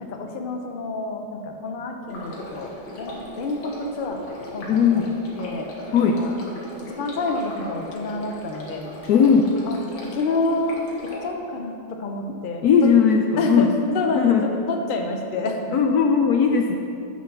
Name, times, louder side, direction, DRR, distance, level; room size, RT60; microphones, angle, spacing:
voice 1, 0.0-5.0 5.4-5.7 6.2-6.3 6.8-8.9 9.2-9.4 9.7-10.8 11.2-12.9 13.4-15.8, left 2 dB, 50° left, 3 dB, 0.6 m, -28 dB
Stream, 2.1-11.2, left 1 dB, 90° left, 2.3 m, -39 dB
voice 2, 4.7-5.1 5.9-6.2 9.1-9.5 12.6-13.7 14.1-14.5 15.7-16.8, left 6 dB, 70° left, 3 dB, 0.9 m, -18 dB
8.8 x 6.9 x 6.0 m, 2.7 s
omnidirectional pair, 2.0 m